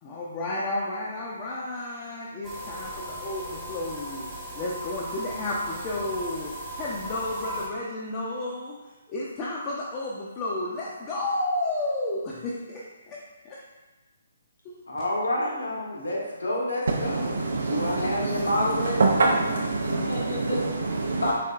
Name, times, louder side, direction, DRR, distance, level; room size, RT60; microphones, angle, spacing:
voice 1, 0.0-4.3 4.5-8.8 9.1-13.2 13.4-13.6, left 2 dB, 25° left, -5 dB, 0.5 m, -32 dB
sound 1, 2.4-7.7, equal, 10° right, 0.7 m, -37 dB
voice 2, 14.9-18.9 19.2-19.3 19.8-20.6 21.2-21.3, left 1 dB, 75° left, -5 dB, 1.4 m, -29 dB
voice 3, 16.9-21.3, right 3 dB, 55° right, -1 dB, 0.4 m, -26 dB
4.1 x 3.5 x 2.5 m, 1.2 s
figure-of-eight pair, 135°, 0 cm